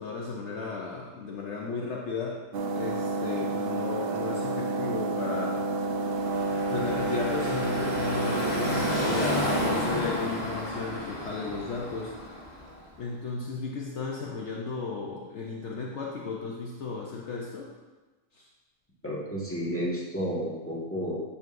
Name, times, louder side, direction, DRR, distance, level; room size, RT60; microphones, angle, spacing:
voice 1, 0.0-2.4 2.7-5.7 6.7-12.1 13.0-17.7 18.3-18.4, left 4 dB, 65° left, -2 dB, 1.1 m, -34 dB
sound 1, 2.5-9.8, right 2 dB, 60° right, 0.7 m, -30 dB
Car passing by / Traffic noise roadway noise, 6.0-12.9, left 1 dB, 35° left, 2.0 m, -32 dB
voice 2, 19.0-21.2, equal, 10° left, -7 dB, 1.6 m, -31 dB
9.2 x 6.8 x 2.6 m, 1.2 s
omnidirectional pair, 1.3 m